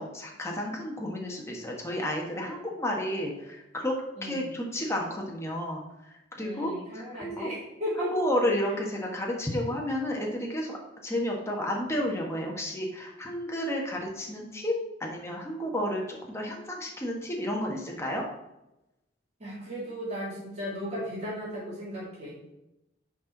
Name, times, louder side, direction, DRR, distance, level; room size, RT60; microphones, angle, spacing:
voice 1, 0.0-5.8 6.1-7.5 8.0-10.8 11.0-14.7 15.0-18.2, equal, 15° left, -1 dB, 1.3 m, -31 dB
voice 2, 4.2-4.5 6.4-8.1 19.4-22.4, equal, 40° right, -7 dB, 3.0 m, -36 dB
10.5 x 4.4 x 3.9 m, 0.91 s
head